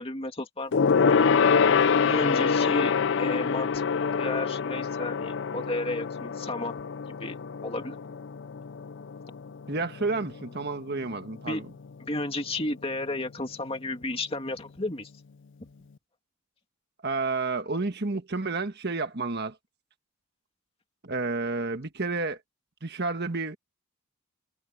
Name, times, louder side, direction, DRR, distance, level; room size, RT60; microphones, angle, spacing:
voice 1, 0.0-1.4 2.0-3.9 4.2-6.7 7.2-8.1 11.5-11.6 12.0-15.1, left 2 dB, 25° left, 2.4 m, -33 dB
Gong, 0.7-10.5 10.8-11.0 11.3-11.4, left 6 dB, 55° left, 0.5 m, -25 dB
voice 2, 9.7-11.7 17.0-19.6 21.0-22.4 22.8-23.6, right 3 dB, 50° right, 1.5 m, -30 dB
head